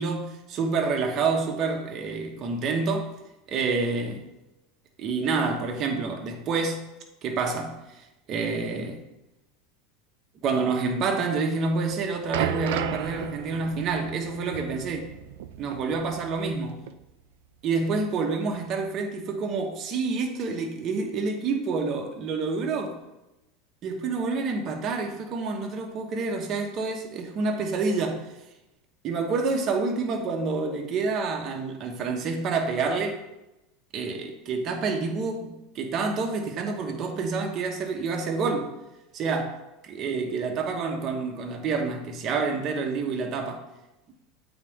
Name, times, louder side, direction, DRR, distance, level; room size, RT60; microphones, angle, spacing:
voice 1, 0.0-3.1 3.5-4.2 5.0-6.8 7.2-9.0 10.4-15.0 15.6-16.8 17.6-23.0 23.8-28.2 29.0-33.2 33.9-38.7 39.1-43.6, right 4 dB, 40° right, 1.2 m, -28 dB
sound 1, 11.7-16.6 16.9-17.0 17.8-17.9, right 10 dB, 80° right, 0.4 m, -34 dB
8.4 x 4.0 x 3.6 m
supercardioid pair, 125°, 0 cm